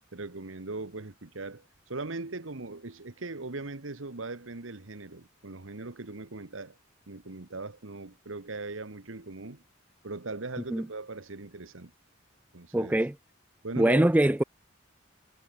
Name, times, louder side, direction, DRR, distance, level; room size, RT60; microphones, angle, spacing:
voice 1, 0.1-6.8 7.1-9.6 10.0-11.9 12.5-12.9 13.6-14.1, right 3 dB, 75° right, 1.4 m, -39 dB
voice 2, 12.7-13.1 13.8-14.4, right 1 dB, 10° right, 0.3 m, -23 dB
head